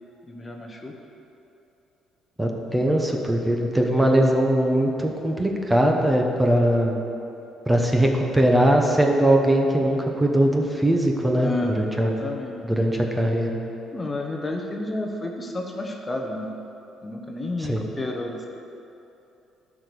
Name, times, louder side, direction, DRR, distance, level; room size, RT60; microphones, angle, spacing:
voice 1, 0.3-0.9 11.4-12.6 13.9-16.5 17.0-18.5, left 2 dB, 25° left, 1 dB, 1.0 m, -31 dB
voice 2, 2.4-7.0 7.7-12.1 12.6-13.6 17.6-17.8, right 1 dB, 10° right, 1 dB, 1.2 m, -21 dB
11.5 x 4.9 x 6.9 m, 2.8 s
cardioid pair, 90°, 0 cm